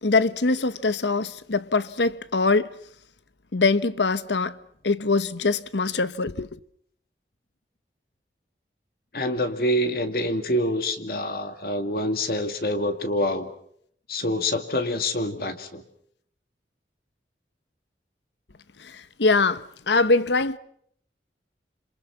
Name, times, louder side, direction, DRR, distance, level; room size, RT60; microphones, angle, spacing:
voice 1, 0.0-2.7 3.5-4.6 4.8-6.5 18.9-20.6, left 3 dB, 85° left, 1.1 m, -23 dB
voice 2, 9.1-13.5 14.1-15.8, left 1 dB, 55° left, 2.3 m, -26 dB
27.5 x 27.0 x 5.8 m
head